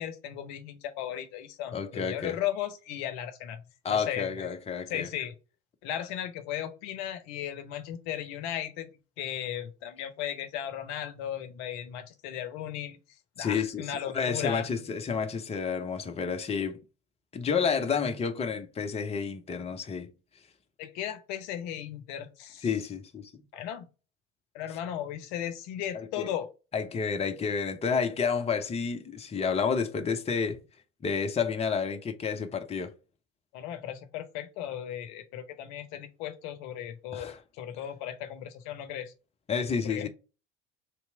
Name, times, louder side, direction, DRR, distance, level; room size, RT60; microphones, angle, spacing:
voice 1, 0.0-3.6 3.9-4.5 4.9-5.4 5.8-8.9 9.2-13.0 13.4-14.7 20.8-22.7 23.5-23.9 24.5-26.5 33.5-39.1 39.8-40.1, left 10 dB, 55° left, 0.7 m, -36 dB
voice 2, 1.7-2.4 3.8-5.1 13.4-16.8 17.3-20.1 22.6-23.3 25.9-26.3 26.7-30.6 31.0-32.9 37.1-37.4 39.5-40.1, left 6 dB, 20° left, 0.7 m, -30 dB
3.4 x 3.0 x 4.3 m
figure-of-eight pair, 65°, 33 cm